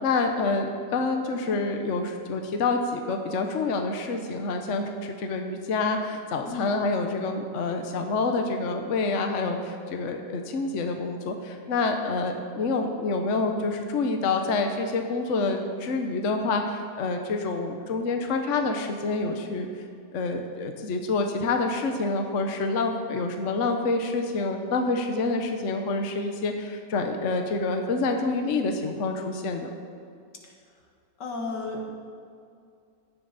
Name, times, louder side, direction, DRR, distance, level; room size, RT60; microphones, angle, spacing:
voice 1, 0.0-19.7 20.1-29.7, left 3 dB, 50° left, 4 dB, 1.2 m, -27 dB
voice 2, 31.2-31.9, left 2 dB, 80° left, 0 dB, 2.4 m, -33 dB
16.5 x 11.0 x 4.1 m, 2.4 s
omnidirectional pair, 1.8 m